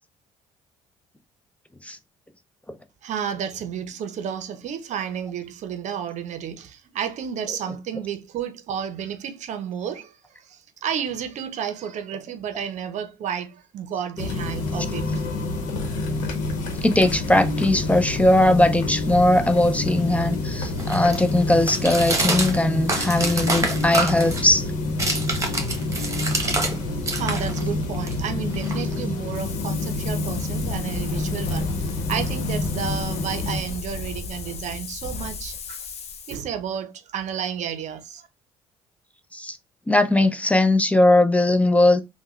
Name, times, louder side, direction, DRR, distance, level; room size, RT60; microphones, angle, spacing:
voice 1, 3.0-15.1 27.1-35.8 36.3-38.3, right 8 dB, 60° right, 0.6 m, -31 dB
sound 1, 14.2-33.6, left 2 dB, 80° left, 0.9 m, -28 dB
voice 2, 16.8-24.7 39.3-39.6 39.9-42.0, left 1 dB, 10° left, 0.5 m, -19 dB
sound 2, 19.4-26.8 27.0-29.2, right 2 dB, 20° right, 1.1 m, -28 dB
Wind, 29.3-36.4, left 4 dB, 50° left, 0.7 m, -35 dB
3.5 x 2.2 x 3.1 m
supercardioid pair, 75°, 14 cm